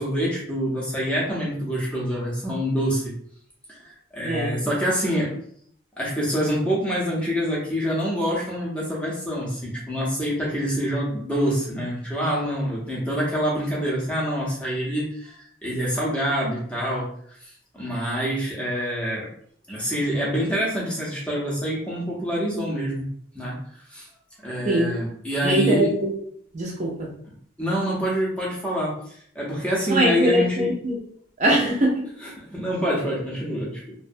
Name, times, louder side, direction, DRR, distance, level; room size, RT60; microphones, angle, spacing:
voice 1, 0.0-3.1 3.7-5.3 6.0-19.3 19.7-23.1 23.3-24.1 24.4-25.9 27.6-30.7 32.2-33.9, equal, 5° left, -5 dB, 0.6 m, -26 dB
voice 2, 4.2-4.5 24.6-24.9 25.4-26.1 26.5-27.1 29.9-31.0 31.4-32.0, right 1 dB, 40° right, -2 dB, 0.5 m, -22 dB
2.5 x 2.1 x 2.6 m, 0.63 s
head